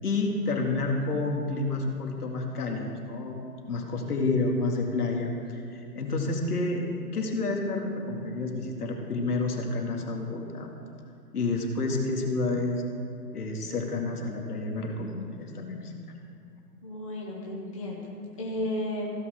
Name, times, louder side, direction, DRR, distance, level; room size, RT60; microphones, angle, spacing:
voice 1, 0.0-10.7 11.3-12.8 13.3-16.0, left 3 dB, 65° left, 1 dB, 2.1 m, -29 dB
voice 2, 16.8-18.1 18.4-19.1, left 1 dB, 20° left, -4 dB, 0.8 m, -33 dB
15.5 x 5.6 x 6.3 m, 2.5 s
hypercardioid pair, 175°, 49 cm